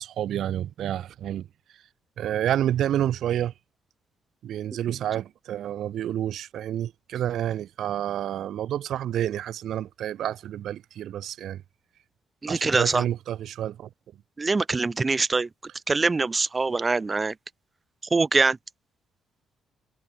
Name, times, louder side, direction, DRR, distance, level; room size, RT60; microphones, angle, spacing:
voice 1, 0.0-1.5 2.2-3.5 4.4-11.6 12.5-13.9, right 11 dB, 75° right, 3.3 m, -29 dB
voice 2, 12.4-13.0 14.4-15.5 15.9-17.3 18.1-18.6, right 3 dB, 25° right, 2.4 m, -23 dB
cardioid pair, 90°, 0 cm